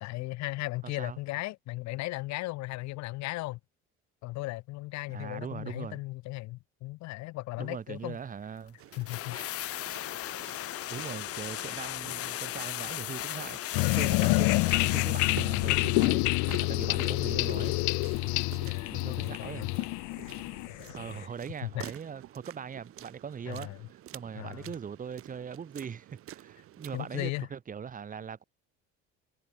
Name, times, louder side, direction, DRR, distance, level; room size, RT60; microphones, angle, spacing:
voice 1, 0.0-3.6 4.2-8.2 9.0-9.8 18.6-19.7 21.6-21.9 23.5-23.8 24.3-24.7 26.9-27.5, left 20 dB, 65° left, 1.5 m, -37 dB
voice 2, 0.8-1.2 5.1-6.0 7.6-8.8 10.9-16.2 16.6-17.8 18.9-19.7 20.9-28.4, right 7 dB, 25° right, 7.5 m, -41 dB
sound 1, 8.8-27.2, right 13 dB, 50° right, 3.8 m, -50 dB
sound 2, 8.9-16.2 16.5-16.6, left 14 dB, 50° left, 3.6 m, -37 dB
sound 3, 13.7-21.2, left 28 dB, 90° left, 0.6 m, -27 dB
cardioid pair, 160°, 29 cm